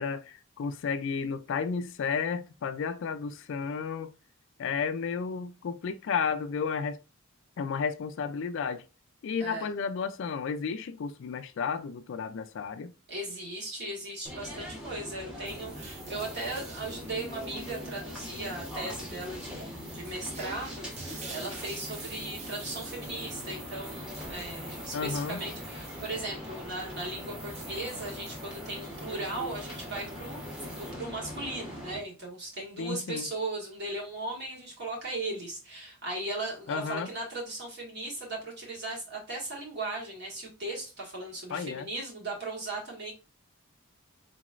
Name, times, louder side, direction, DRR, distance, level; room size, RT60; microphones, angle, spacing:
voice 1, 0.0-4.1 4.6-7.0 7.6-8.8 9.2-12.9 24.9-25.5 32.8-33.3 36.7-37.1 41.5-41.9, left 6 dB, 60° left, 0.3 m, -32 dB
voice 2, 13.1-43.1, right 2 dB, 55° right, 1.6 m, -37 dB
sound 1, 14.2-32.0, left 1 dB, 5° right, 0.9 m, -41 dB
sound 2, 15.4-30.9, right 4 dB, 30° right, 0.8 m, -48 dB
4.0 x 3.0 x 2.4 m
head